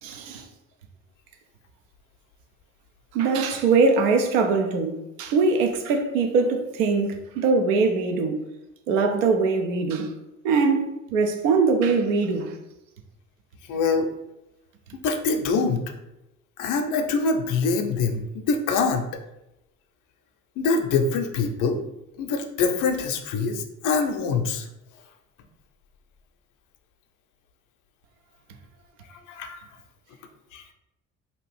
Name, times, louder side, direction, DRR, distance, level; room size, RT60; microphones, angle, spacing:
voice 1, 0.0-0.5 3.1-8.5 8.9-10.1 10.4-12.6, right 4 dB, 75° right, 0.6 m, -22 dB
voice 2, 13.7-14.1 15.0-15.8 16.6-19.1 20.6-21.8 22.2-24.7 29.3-29.6 30.5-30.6, left 4 dB, 50° left, 0.6 m, -24 dB
2.8 x 2.4 x 3.3 m
hypercardioid pair, 55°, 39 cm